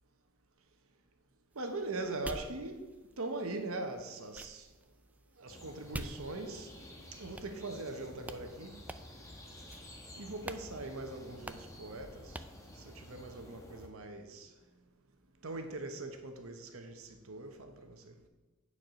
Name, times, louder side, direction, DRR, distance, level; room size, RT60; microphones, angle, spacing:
sound 1, 1.5-6.8 7.4-8.0 8.2-8.4 8.9-9.3 9.7-10.0 10.4-10.7 10.9-11.0 11.5-11.8 12.3-12.6, right 1 dB, 5° right, 0.3 m, -47 dB
voice 1, 1.6-2.8 3.2-4.7 5.4-6.7 7.2-8.7 10.1-12.4 12.8-14.5 15.4-18.1, right 2 dB, 75° right, 6 dB, 0.9 m, -41 dB
sound 2, 5.5-13.9, left 1 dB, 15° left, 1.2 m, -52 dB
9.2 x 4.7 x 5.8 m, 1.2 s
head